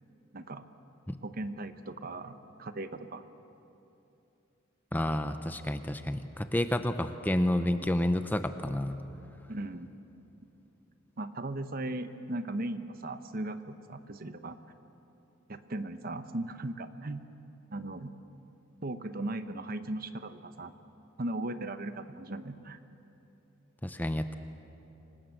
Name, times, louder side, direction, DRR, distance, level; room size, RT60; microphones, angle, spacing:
voice 1, 0.3-0.6 1.2-3.2 9.5-9.9 11.2-14.6 15.5-17.2 17.7-18.1 18.8-20.7 21.2-22.8, right 2 dB, 45° right, 10 dB, 0.9 m, -37 dB
voice 2, 4.9-9.0 23.8-24.4, left 1 dB, 10° left, 9 dB, 0.6 m, -30 dB
26.0 x 18.5 x 7.8 m, 2.9 s
head